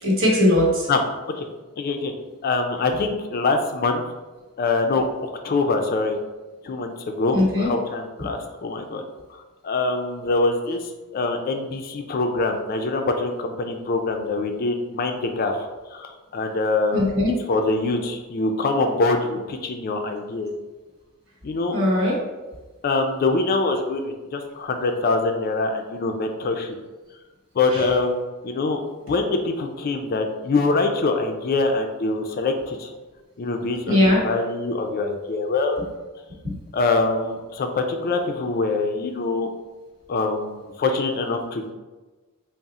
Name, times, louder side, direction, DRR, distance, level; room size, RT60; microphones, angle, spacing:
voice 1, 0.0-0.9 7.3-7.7 16.9-17.4 21.7-22.2 33.9-34.2 36.4-36.5, left 1 dB, 65° right, -3 dB, 1.1 m, -19 dB
voice 2, 1.8-2.1 2.4-4.0 4.6-6.2 6.6-9.0 9.3-17.1 17.5-20.5 21.4-21.8 22.8-26.7 27.5-28.8 29.1-32.9 33.4-35.8 36.7-39.5 40.1-41.7, left 3 dB, 45° left, 5 dB, 0.3 m, -24 dB
3.6 x 2.0 x 4.0 m, 1.2 s
head